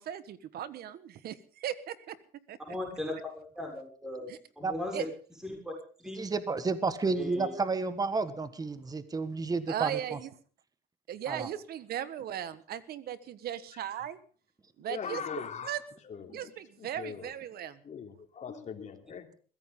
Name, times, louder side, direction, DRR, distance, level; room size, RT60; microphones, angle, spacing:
voice 1, 0.0-2.1 2.5-2.6 4.3-4.4 4.9-5.1 9.7-10.3 11.1-14.2 14.8-15.2 15.6-15.8 16.3-17.8, right 10 dB, 65° right, 15 dB, 1.5 m, -37 dB
voice 2, 2.7-4.3 4.6-5.1 5.4-6.2 7.1-7.5, left 1 dB, 5° right, 1 dB, 6.4 m, -38 dB
voice 3, 6.2-10.2 11.3-11.5, right 3 dB, 20° right, 12 dB, 1.6 m, -31 dB
voice 4, 14.9-15.8 16.0-16.5 16.8-17.3 17.8-19.3, left 7 dB, 45° left, 4 dB, 3.4 m, -40 dB
22.0 x 16.0 x 3.8 m, 0.40 s
cardioid pair, 110°, 17 cm